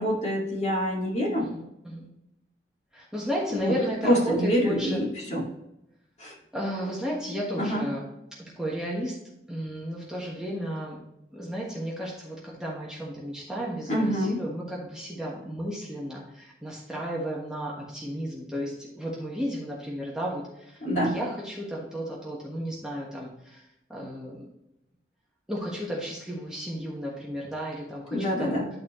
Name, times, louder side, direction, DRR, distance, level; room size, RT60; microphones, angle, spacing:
voice 1, 0.0-1.5 3.5-3.7 4.0-5.4 6.2-6.3 7.6-7.8 13.9-14.4 20.8-21.2 28.1-28.7, equal, 40° left, -3 dB, 2.2 m, -26 dB
voice 2, 1.4-2.1 2.9-5.0 6.5-8.0 8.6-9.2 9.5-11.0 11.3-23.6 23.9-24.5 25.5-28.6, equal, 5° right, -4 dB, 1.3 m, -33 dB
11.5 x 4.2 x 3.1 m, 0.88 s
head